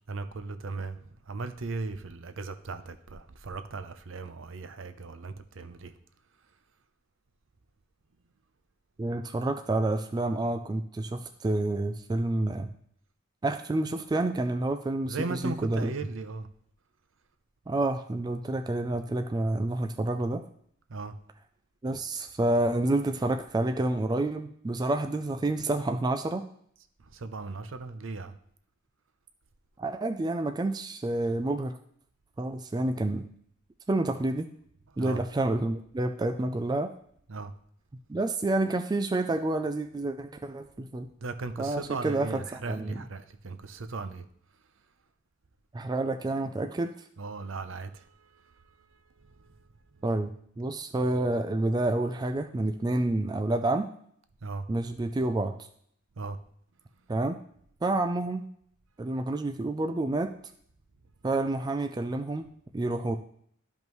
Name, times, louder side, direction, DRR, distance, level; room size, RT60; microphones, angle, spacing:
voice 1, 0.1-1.0 1.3-5.9 15.1-16.5 20.9-21.1 27.1-28.3 35.0-35.2 37.3-37.5 41.2-44.2 47.2-48.0 54.4-54.6 56.2-56.4, right 3 dB, 65° right, 9 dB, 0.6 m, -37 dB
voice 2, 9.0-12.7 13.4-15.9 17.7-20.4 21.8-26.4 29.8-31.8 32.4-33.3 33.9-34.5 35.0-36.9 38.1-41.1 41.6-43.1 45.7-46.9 50.0-53.9 54.7-55.5 57.1-57.4 57.8-58.4 59.0-60.3 61.2-62.5 62.7-63.2, right 2 dB, 20° right, 7 dB, 0.3 m, -29 dB
12.5 x 5.3 x 3.1 m, 0.66 s
head